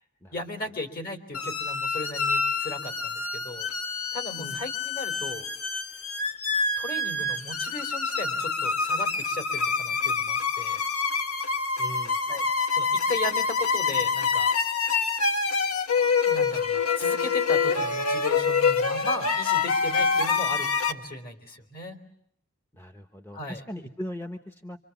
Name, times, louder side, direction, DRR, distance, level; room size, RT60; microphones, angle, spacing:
voice 1, 0.3-3.7 4.1-5.5 6.8-10.9 12.3-12.4 12.7-14.5 16.2-22.0 23.3-23.6, left 2 dB, 45° left, 7 dB, 3.6 m, -36 dB
sound 1, 1.3-20.9, left 5 dB, 85° left, 1.5 m, -26 dB
voice 2, 11.8-12.2 22.7-24.8, equal, 10° left, 6 dB, 1.1 m, -39 dB
27.5 x 25.5 x 7.1 m, 0.76 s
head